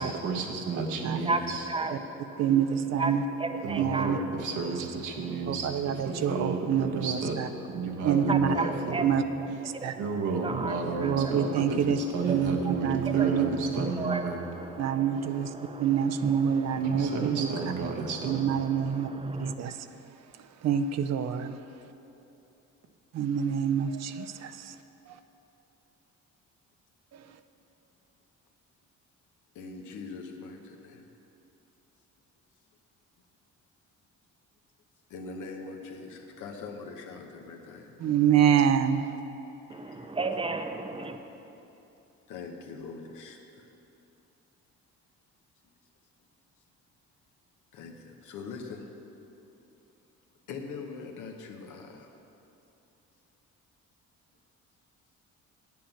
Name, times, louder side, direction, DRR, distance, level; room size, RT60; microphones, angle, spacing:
voice 1, 0.0-1.7 3.6-7.4 7.7-9.1 10.0-14.4 16.9-18.5, right 4 dB, 85° right, 1 dB, 1.3 m, -32 dB
voice 2, 1.7-2.4 3.0-3.1 3.4-4.2 7.3-7.4 7.8-8.0 8.3-9.0 9.7-10.0 10.4-11.6 12.3-12.4 12.6-13.5 13.7-19.5 39.7-41.2, right 3 dB, 20° right, 7 dB, 0.7 m, -35 dB
voice 3, 2.4-3.2 3.8-4.2 4.6-4.9 5.5-7.5 8.0-8.5 9.0-9.2 9.6-9.9 11.0-12.0 12.3-13.5 14.8-15.5 15.8-17.6 18.2-19.1 19.4-19.9 20.6-21.6 23.1-24.8 25.1-25.2 27.1-27.3 38.0-39.1, right 8 dB, 60° right, 10 dB, 0.6 m, -26 dB
voice 4, 29.5-31.0 35.1-38.1 42.3-43.7 47.7-48.9 50.5-52.1, left 4 dB, 85° left, 3 dB, 1.1 m, -42 dB
8.9 x 7.5 x 5.8 m, 2.9 s
cardioid pair, 90°, 30 cm